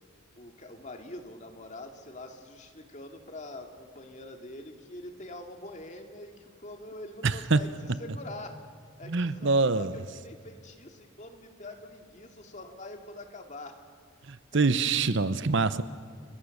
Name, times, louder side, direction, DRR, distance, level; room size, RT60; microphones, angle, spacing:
voice 1, 0.4-7.7 8.0-8.6 9.0-13.8 14.5-14.7, left 1 dB, 35° left, 4 dB, 2.3 m, -44 dB
voice 2, 7.2-7.6 9.1-9.9 14.3-15.8, right 3 dB, 60° right, 14 dB, 0.8 m, -25 dB
29.5 x 22.5 x 6.6 m, 2.1 s
head